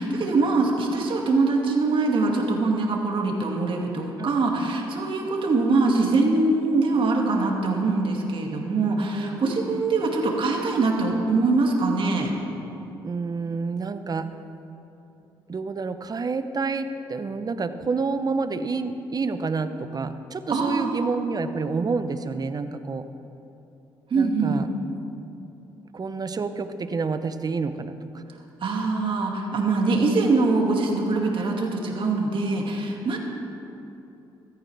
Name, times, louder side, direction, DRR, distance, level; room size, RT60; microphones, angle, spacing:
voice 1, 0.0-12.3 20.5-21.1 24.1-24.6 28.6-33.2, right 3 dB, 55° right, 0 dB, 2.3 m, -23 dB
voice 2, 9.1-9.9 13.0-14.3 15.5-23.1 24.1-24.7 25.9-28.2, right 4 dB, 40° right, 10 dB, 0.9 m, -29 dB
15.5 x 13.5 x 3.5 m, 2.9 s
hypercardioid pair, 55°, 11 cm